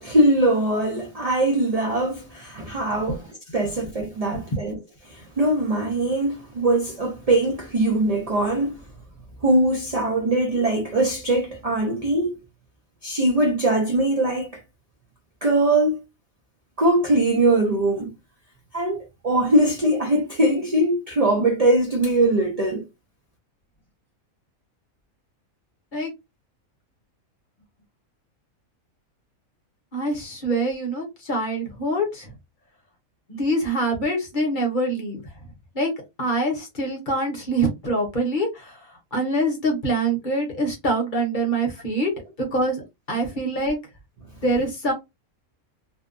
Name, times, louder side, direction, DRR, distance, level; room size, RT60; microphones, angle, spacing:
voice 1, 0.0-3.2 3.5-4.8 5.1-8.8 9.4-12.4 13.0-14.6 15.4-16.0 16.8-18.1 18.7-22.8, right 1 dB, 60° right, 0.3 m, -21 dB
voice 2, 29.9-32.3 33.3-35.3 35.7-35.9 36.2-42.1 42.4-43.8 44.4-44.9, right 1 dB, 40° left, 0.8 m, -25 dB
2.7 x 2.1 x 2.5 m
omnidirectional pair, 1.5 m